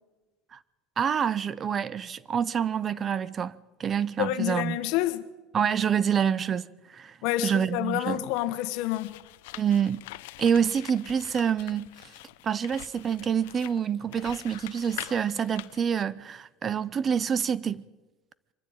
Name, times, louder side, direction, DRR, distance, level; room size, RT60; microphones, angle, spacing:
voice 1, 1.0-4.8 5.5-7.2 7.4-8.2 9.5-10.1 10.4-11.9 12.4-17.8, right 7 dB, 30° right, 0.6 m, -27 dB
voice 2, 4.2-5.2 7.2-9.1, left 14 dB, 65° left, 1.4 m, -28 dB
sound 1, 8.2-16.0, left 18 dB, 85° left, 0.7 m, -44 dB
24.5 x 14.5 x 8.9 m
cardioid pair, 140°, 0 cm